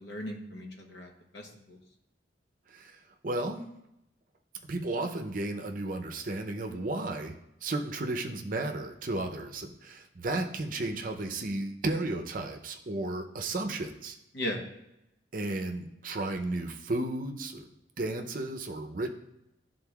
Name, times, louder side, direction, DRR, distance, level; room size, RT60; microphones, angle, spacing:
voice 1, 0.0-1.8 14.3-14.6, left 1 dB, 70° left, 2 dB, 1.0 m, -37 dB
voice 2, 3.2-3.6 4.7-7.3 7.6-14.1 15.3-17.7 18.0-19.1, right 2 dB, 50° right, 5 dB, 0.6 m, -33 dB
11.5 x 3.8 x 2.3 m, 0.86 s
head